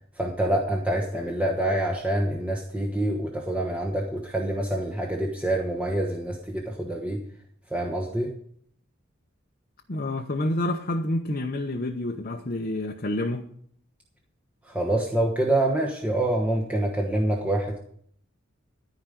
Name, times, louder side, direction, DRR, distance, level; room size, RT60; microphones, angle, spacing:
voice 1, 0.2-7.2 7.7-8.3 14.7-17.8, right 1 dB, 5° right, 1.2 m, -26 dB
voice 2, 9.9-13.5, left 1 dB, 45° left, 0.9 m, -28 dB
13.5 x 5.1 x 9.2 m
head